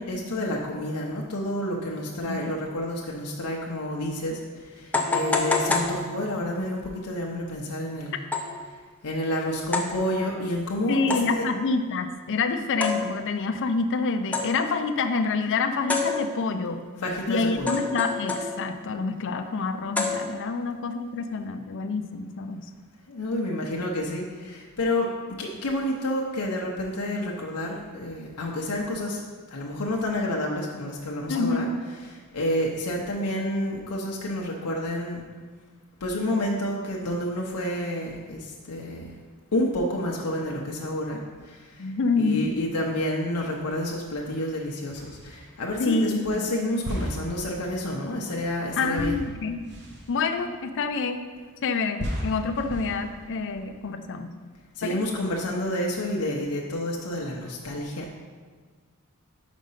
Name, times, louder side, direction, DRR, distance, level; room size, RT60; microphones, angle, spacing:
voice 1, 0.0-8.2 9.0-11.5 17.0-17.8 22.5-22.6 23.1-29.2 29.5-35.2 36.0-39.1 39.5-49.2 54.8-58.2, left 1 dB, 85° left, -2 dB, 0.8 m, -29 dB
sound 1, 4.0-4.1 4.9-6.6 8.3-8.7 9.7-10.1 11.1-11.5 12.8-13.4 14.3-14.8 15.9-16.7 17.7-18.8 20.0-20.7, left 3 dB, 5° left, 0.5 m, -28 dB
voice 2, 10.9-16.8 17.3-22.6 31.3-31.8 41.8-42.5 45.8-46.5 48.8-49.6 50.1-51.2 51.6-54.3 54.8-55.0, left 4 dB, 55° left, 8 dB, 0.5 m, -27 dB
sound 2, 43.3-44.1 44.9-45.8 46.8-51.3 52.0-53.9, equal, 50° right, 1.0 m, -37 dB
5.3 x 5.1 x 5.5 m, 1.5 s
head